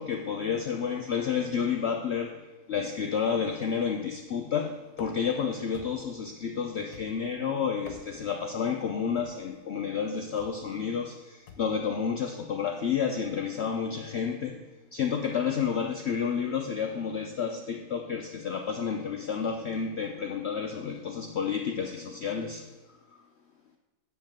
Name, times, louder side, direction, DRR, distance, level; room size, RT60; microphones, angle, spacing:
voice 1, 0.0-22.7, left 6 dB, 90° left, 4 dB, 0.5 m, -30 dB
sound 1, 4.9-5.4 5.7-6.2 6.9-7.4 7.7-8.4 9.2-9.5 10.4-10.6 11.5-11.8, left 5 dB, 55° left, 1.2 m, -48 dB
8.1 x 7.5 x 3.6 m, 1.2 s
omnidirectional pair, 1.9 m